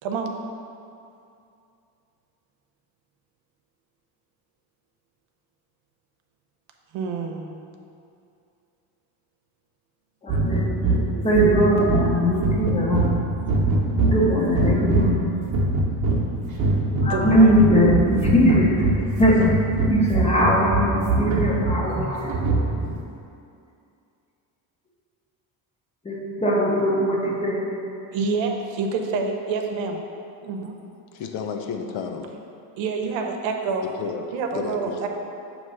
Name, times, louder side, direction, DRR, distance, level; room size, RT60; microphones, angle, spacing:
voice 1, 0.0-0.3 6.9-7.6 17.1-17.6 28.1-30.0 30.4-30.7 32.8-33.9 34.3-35.1, right 4 dB, 85° right, 3 dB, 0.8 m, -27 dB
voice 2, 10.2-13.2 14.0-15.3 17.0-18.9 19.2-19.4 19.9-22.3 26.0-27.7, equal, 15° left, -3 dB, 0.8 m, -20 dB
sound 1, 10.3-23.0, right 2 dB, 40° right, 0.9 m, -23 dB
voice 3, 31.1-32.3 34.0-34.3 34.5-35.1, left 5 dB, 90° left, 4 dB, 0.7 m, -31 dB
6.4 x 3.1 x 5.4 m, 2.6 s
cardioid pair, 145°, 45 cm